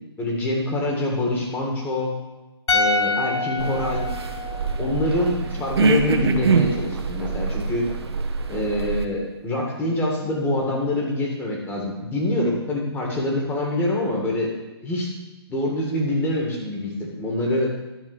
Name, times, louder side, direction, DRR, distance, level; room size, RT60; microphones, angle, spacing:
voice 1, 0.2-2.1 2.7-4.1 4.8-7.9 8.5-14.5 14.8-15.1 15.5-17.7, left 1 dB, 15° left, -2 dB, 1.9 m, -25 dB
sound 1, 2.7-5.9 6.2-6.3, left 3 dB, 75° left, 1.0 m, -27 dB
sound 2, 3.6-9.0, right 4 dB, 65° right, 1.0 m, -24 dB
11.0 x 4.4 x 6.1 m, 1.0 s
figure-of-eight pair, 135°, 14 cm